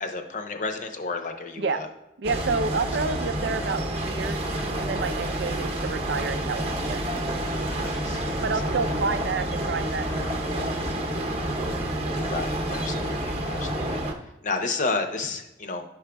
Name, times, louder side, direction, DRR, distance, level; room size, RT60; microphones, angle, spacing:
voice 1, 0.0-1.9 7.8-8.9 12.3-14.0 14.4-15.8, left 3 dB, 40° left, 4 dB, 0.6 m, -32 dB
sound 1, 2.2-14.1, right 1 dB, 35° right, 0.8 m, -29 dB
voice 2, 2.2-4.4 4.8-7.0 8.4-10.1 10.3-11.3, right 4 dB, 65° right, 10 dB, 0.5 m, -30 dB
12.5 x 5.0 x 2.3 m, 0.91 s
head